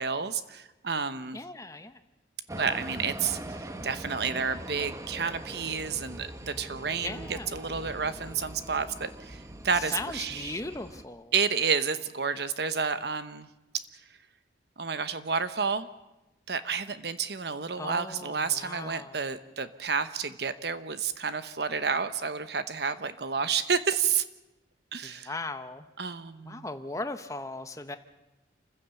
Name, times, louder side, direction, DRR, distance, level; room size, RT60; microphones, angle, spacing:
voice 1, 0.0-1.4 2.5-10.6 11.3-13.5 14.8-15.9 16.5-24.2 24.9-25.3 26.0-26.7, right 6 dB, 60° right, 12 dB, 1.0 m, -30 dB
voice 2, 1.3-2.0 7.0-7.5 9.9-11.3 17.8-19.2 25.0-25.9 26.4-28.0, left 2 dB, 15° left, 9 dB, 1.0 m, -38 dB
sound 1, 2.5-11.0, right 1 dB, 15° right, 0.9 m, -42 dB
27.5 x 15.5 x 7.1 m, 1.0 s
head